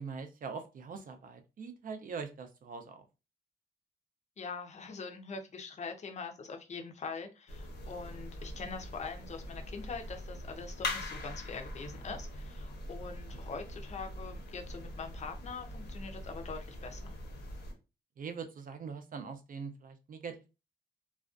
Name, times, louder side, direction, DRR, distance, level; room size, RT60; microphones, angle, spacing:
voice 1, 0.0-3.1 18.2-20.4, right 5 dB, 55° right, 7 dB, 0.5 m, -42 dB
voice 2, 4.4-17.2, left 4 dB, 40° left, 5 dB, 0.5 m, -43 dB
sound 1, 7.5-17.7, left 1 dB, 90° left, 0.8 m, -42 dB
2.4 x 2.2 x 2.4 m, 0.29 s
wide cardioid pair, 115°, 17 cm